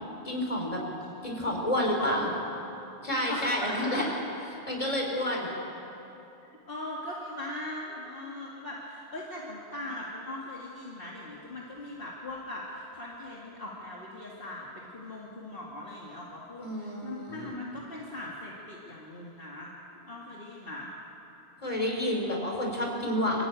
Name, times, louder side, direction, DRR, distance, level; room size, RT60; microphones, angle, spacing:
voice 1, 0.2-0.8 1.2-2.3 3.0-4.1 4.7-5.5 16.6-17.6 21.6-23.5, left 1 dB, 30° left, 0 dB, 4.0 m, -29 dB
voice 2, 1.8-2.3 3.3-4.1 6.7-20.9, left 1 dB, 55° left, -4 dB, 2.3 m, -40 dB
25.5 x 14.5 x 9.0 m, 2.9 s
omnidirectional pair, 1.1 m